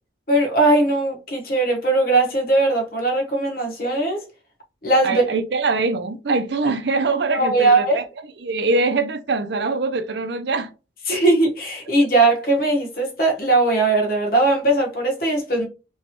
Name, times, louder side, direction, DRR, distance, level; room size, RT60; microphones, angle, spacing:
voice 1, 0.3-4.2 4.8-5.2 7.3-8.0 11.1-15.7, right 2 dB, 50° left, 1.2 m, -19 dB
voice 2, 5.0-8.0 8.4-10.7, right 3 dB, 60° right, 0.5 m, -23 dB
3.3 x 3.0 x 2.9 m
head